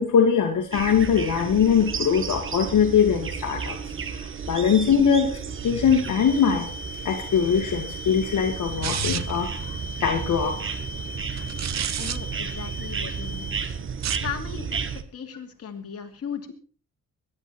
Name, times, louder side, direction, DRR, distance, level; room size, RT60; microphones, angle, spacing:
voice 1, 0.0-3.8 4.1-6.7 7.0-10.7, left 7 dB, 65° left, 3 dB, 2.0 m, -22 dB
sound 1, 0.7-15.0, right 6 dB, 40° right, 1.2 m, -33 dB
sound 2, 6.0-13.7, left 2 dB, 25° left, 2.3 m, -39 dB
sound 3, 8.8-9.5 11.4-12.2 13.9-14.3, right 10 dB, 55° right, 0.8 m, -30 dB
voice 2, 12.0-13.6 14.2-14.7 15.1-16.5, left 7 dB, 45° left, 2 dB, 2.8 m, -36 dB
21.5 x 10.5 x 4.3 m, 0.38 s
cardioid pair, 130°, 32 cm